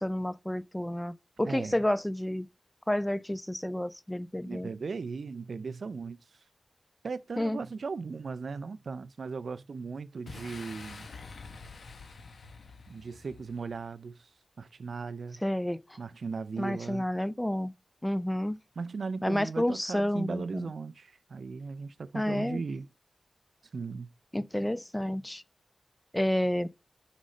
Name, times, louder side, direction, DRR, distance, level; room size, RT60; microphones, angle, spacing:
voice 1, 0.0-2.5 2.9-4.7 7.4-7.6 15.4-15.8 16.6-17.7 18.0-18.6 19.2-20.7 22.1-22.6 24.3-25.4 26.1-26.7, left 1 dB, 10° left, 0.4 m, -30 dB
voice 2, 1.4-1.8 4.4-6.2 7.0-11.1 12.9-14.3 14.6-15.4 16.0-17.1 18.8-22.9 23.7-24.1, right 4 dB, 70° right, 0.4 m, -37 dB
Boom, 10.3-13.9, left 4 dB, 80° left, 1.3 m, -47 dB
6.3 x 5.2 x 5.3 m
cardioid pair, 65°, 0 cm